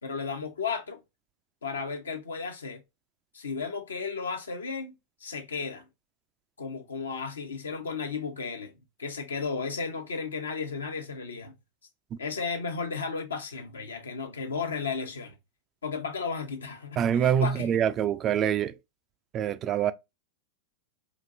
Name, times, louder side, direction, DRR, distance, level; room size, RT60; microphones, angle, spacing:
voice 1, 0.0-1.0 1.6-2.8 3.3-4.9 5.2-5.9 6.6-8.7 9.0-11.5 12.2-15.3 15.8-17.7, left 5 dB, 75° left, 0.8 m, -34 dB
voice 2, 17.0-18.8 19.3-19.9, right 9 dB, 30° right, 0.4 m, -25 dB
4.9 x 2.6 x 2.5 m
figure-of-eight pair, 95°, 0 cm